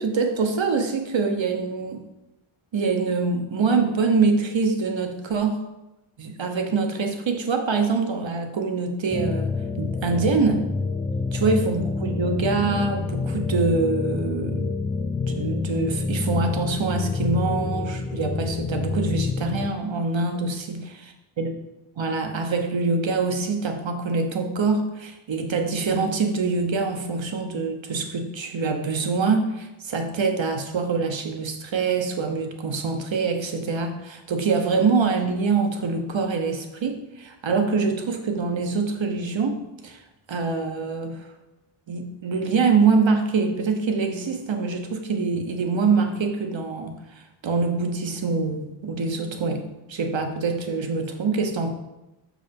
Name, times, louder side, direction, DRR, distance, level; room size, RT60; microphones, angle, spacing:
voice 1, 0.0-2.0 2.7-5.6 6.2-10.7 11.3-14.7 15.3-20.8 21.4-21.5 22.0-40.0 40.3-41.3 41.9-51.7, right 4 dB, 60° right, 5 dB, 1.0 m, -24 dB
sound 1, 9.1-19.7, left 4 dB, 10° left, 0.4 m, -27 dB
6.4 x 5.1 x 5.2 m, 0.96 s
wide cardioid pair, 135°, 50 cm